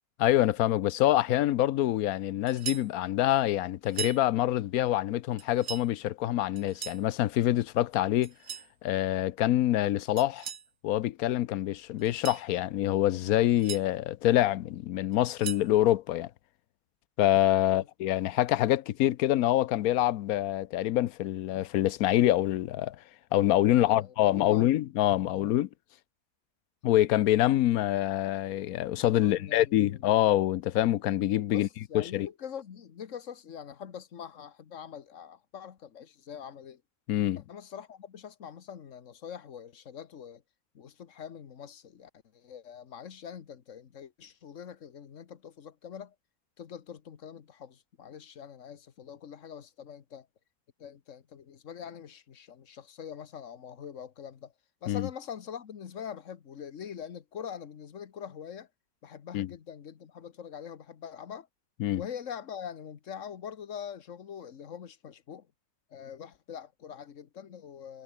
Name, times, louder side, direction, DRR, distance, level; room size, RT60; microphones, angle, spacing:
voice 1, 0.2-8.3 8.8-10.5 10.8-16.3 17.2-23.0 23.3-25.7 26.8-31.7 31.9-32.3 37.1-37.4 54.9-55.1 59.3-59.5 61.8-62.0, left 13 dB, 75° left, 1.1 m, -26 dB
sound 1, 2.5-2.9 3.8-4.2 5.4-5.9 6.6-7.1 8.2-8.7 10.2-10.7 12.0-12.5 13.3-13.8 15.1-15.7, right 7 dB, 50° right, 1.3 m, -39 dB
voice 2, 23.8-24.7 25.2-25.5 29.2-30.0 31.5-36.8 37.3-40.4 40.7-46.1 46.6-50.3 50.8-54.5 54.8-58.7 59.0-61.5 61.9-65.5 65.9-68.0, left 8 dB, 55° left, 1.5 m, -44 dB
omnidirectional pair, 1.6 m